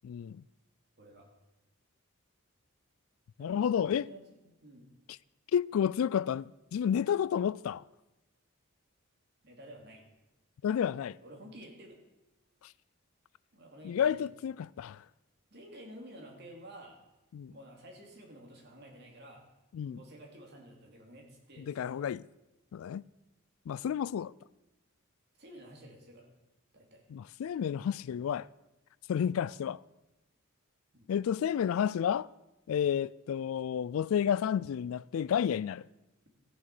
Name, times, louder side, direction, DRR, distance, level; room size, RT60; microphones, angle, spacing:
voice 1, 0.0-0.4 3.4-4.1 5.5-7.8 10.6-11.2 13.8-15.0 17.3-17.5 19.7-20.0 21.7-22.2 22.7-23.0 23.7-24.3 27.1-28.5 29.1-29.8 31.1-32.3 32.7-35.9, left 8 dB, 75° left, 0.3 m, -31 dB
voice 2, 1.0-1.3 3.4-4.9 9.4-10.0 11.2-12.0 13.5-14.2 15.5-17.0 17.5-19.5 19.9-22.1 25.4-26.4 26.7-27.0 30.9-31.1, right 1 dB, 50° right, 2.7 m, -51 dB
14.5 x 7.2 x 6.7 m
head